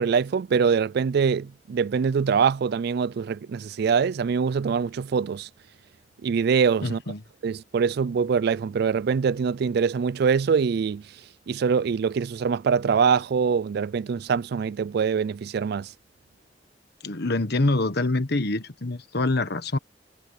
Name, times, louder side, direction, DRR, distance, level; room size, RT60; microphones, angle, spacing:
voice 1, 0.0-5.5 6.2-7.0 7.4-11.0 11.5-15.9, right 6 dB, 60° right, 0.3 m, -24 dB
voice 2, 6.8-7.2 17.0-19.8, left 2 dB, 60° left, 1.5 m, -25 dB
head